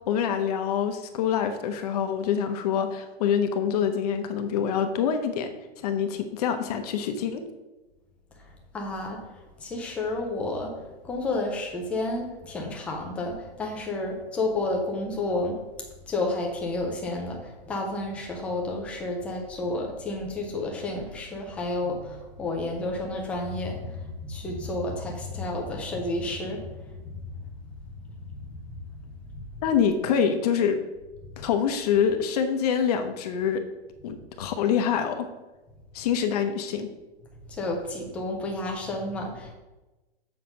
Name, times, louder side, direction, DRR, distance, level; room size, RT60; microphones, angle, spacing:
voice 1, 0.1-5.5 5.8-7.4 29.6-30.8 31.4-33.6 34.0-35.3 35.9-36.9, left 7 dB, 40° left, 7 dB, 0.8 m, -25 dB
voice 2, 8.4-10.8 11.0-15.6 16.1-27.5 28.3-29.0 37.5-39.5, left 2 dB, 5° left, 1 dB, 0.3 m, -31 dB
7.7 x 5.8 x 5.3 m, 1.1 s
hypercardioid pair, 150°, 32 cm